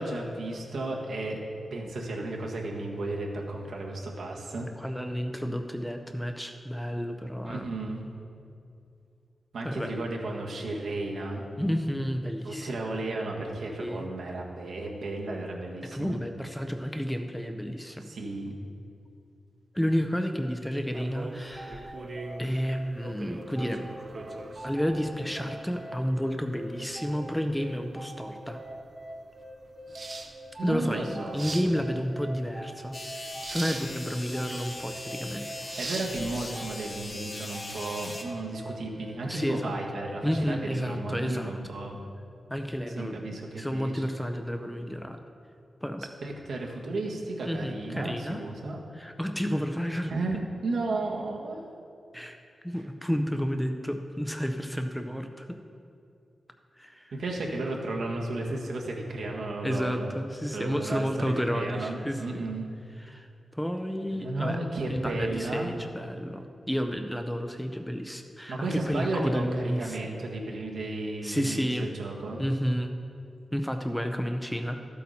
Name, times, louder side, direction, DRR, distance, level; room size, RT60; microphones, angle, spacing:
voice 1, 0.0-1.4 1.7-4.7 7.4-8.0 9.5-11.4 12.4-16.2 18.0-18.5 30.6-31.6 35.8-42.0 43.0-44.0 46.2-48.8 50.1-51.6 57.1-60.2 60.5-62.7 64.1-65.7 68.5-72.4, right 2 dB, 75° right, -1 dB, 1.5 m, -34 dB
voice 2, 4.8-7.7 9.6-9.9 11.6-13.0 13.8-14.1 15.9-18.0 19.7-22.0 22.4-23.9 24.6-28.6 30.6-35.5 39.3-39.8 40.2-41.5 42.5-43.2 43.6-45.2 45.8-46.1 47.4-48.4 48.9-50.1 52.1-52.4 52.6-55.5 56.8-57.1 59.6-62.5 63.0-63.3 63.5-64.6 64.9-70.1 71.2-71.9 72.4-72.9 73.5-74.8, equal, ahead, 6 dB, 0.5 m, -31 dB
sound 1, 20.9-37.1, right 3 dB, 40° right, 0.8 m, -43 dB
sound 2, 21.6-40.4, right 1 dB, 15° right, 1.5 m, -43 dB
sound 3, 32.9-38.2, left 2 dB, 30° left, 0.9 m, -40 dB
13.5 x 8.4 x 4.2 m, 2.5 s
wide cardioid pair, 150°, 0 cm